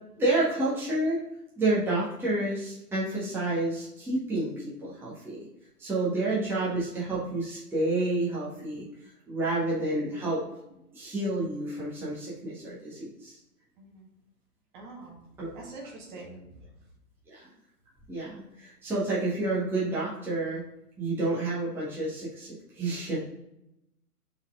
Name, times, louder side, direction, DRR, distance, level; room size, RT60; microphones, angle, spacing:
voice 1, 0.2-1.2 1.6-5.5 5.8-8.9 9.3-10.4 10.9-13.4 15.4-15.5 17.3-17.5 18.1-20.6 21.0-23.2, right 2 dB, 5° right, -8 dB, 1.4 m, -29 dB
voice 2, 13.8-14.1 14.7-15.2 15.5-16.4, right 2 dB, 30° right, -1 dB, 1.7 m, -45 dB
5.5 x 4.9 x 3.7 m, 0.86 s
figure-of-eight pair, 125°, 45 cm